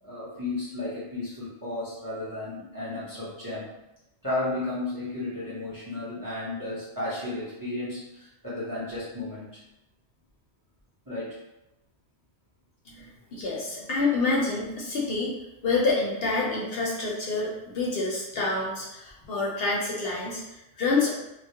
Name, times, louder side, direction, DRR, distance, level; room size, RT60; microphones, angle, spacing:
voice 1, 0.0-3.7 4.2-9.6 11.1-11.3, left 2 dB, 20° right, -9 dB, 0.6 m, -33 dB
voice 2, 12.9-15.3 15.6-21.1, left 3 dB, 65° left, -4 dB, 0.7 m, -27 dB
2.2 x 2.1 x 2.8 m, 0.92 s
omnidirectional pair, 1.2 m